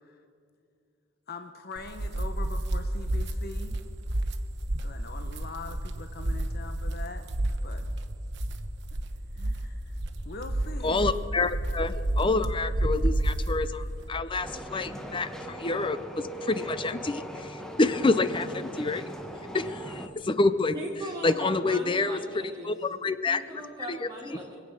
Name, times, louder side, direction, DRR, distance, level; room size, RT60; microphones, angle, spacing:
voice 1, 1.3-3.8 4.8-7.2 7.6-7.9 9.3-10.0 10.2-11.0, left 3 dB, 50° left, 7 dB, 0.8 m, -42 dB
sound 1, 1.8-14.1, right 1 dB, 60° right, 1.0 m, -30 dB
voice 2, 10.8-19.1 19.5-20.7 21.2-23.4 23.9-24.1, left 3 dB, 25° left, 13 dB, 0.5 m, -28 dB
sound 2, 14.4-20.1, right 1 dB, 5° left, 1.1 m, -39 dB
voice 3, 20.7-22.7 23.3-24.6, right 1 dB, 20° right, -4 dB, 2.4 m, -39 dB
24.0 x 8.5 x 6.5 m, 2.4 s
head